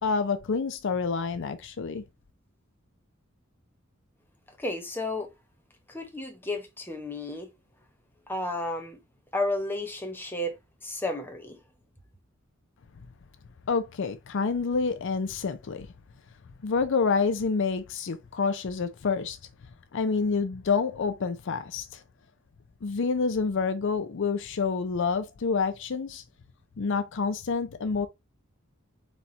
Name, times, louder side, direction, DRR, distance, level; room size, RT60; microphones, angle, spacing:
voice 1, 0.0-2.0 13.7-15.9 16.6-19.4 19.9-22.0 22.8-26.2 26.8-28.1, left 5 dB, 60° left, 0.5 m, -28 dB
voice 2, 4.6-5.3 5.9-7.5 8.3-9.0 9.3-10.5 10.8-11.6, left 1 dB, 10° left, 0.8 m, -32 dB
4.2 x 2.3 x 4.2 m
head